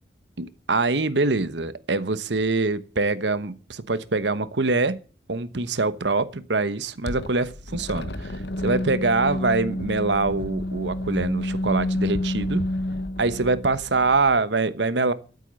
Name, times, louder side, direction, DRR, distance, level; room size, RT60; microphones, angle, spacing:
voice 1, 0.4-5.0 5.3-12.6 13.2-15.1, right 3 dB, 75° right, 1.1 m, -24 dB
sound 1, 7.1-14.4, left 1 dB, 70° left, 1.1 m, -29 dB
13.0 x 8.2 x 8.2 m
head